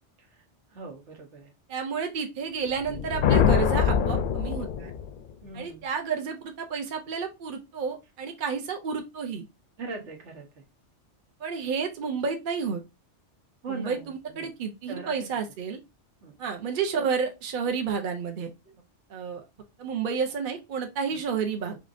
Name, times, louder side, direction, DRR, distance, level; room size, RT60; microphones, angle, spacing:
voice 1, 0.2-1.5 5.4-5.9 9.8-10.6 13.6-14.6 14.9-15.3 16.2-16.4 18.6-18.8 21.1-21.2, right 4 dB, 80° right, 1.4 m, -41 dB
voice 2, 1.7-4.9 5.5-9.4 11.4-12.8 13.7-15.8 16.4-18.5 19.1-19.4 19.8-21.8, right 6 dB, 50° right, 0.8 m, -31 dB
sound 1, 2.8-5.3, left 7 dB, 60° left, 0.6 m, -24 dB
4.9 x 3.1 x 2.5 m
omnidirectional pair, 1.2 m